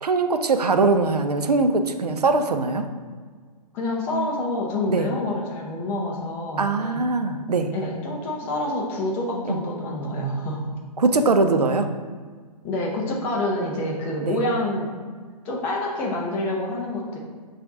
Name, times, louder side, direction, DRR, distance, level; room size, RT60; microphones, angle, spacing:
voice 1, 0.0-2.9 4.9-5.1 6.6-7.7 9.4-9.6 11.0-11.9 14.2-14.4, right 3 dB, 80° right, 7 dB, 0.4 m, -21 dB
voice 2, 3.7-7.0 7.7-10.7 12.6-14.9 15.4-17.2, left 1 dB, 10° left, -2 dB, 0.3 m, -27 dB
5.8 x 2.4 x 2.6 m, 1.5 s
figure-of-eight pair, 125°, 20 cm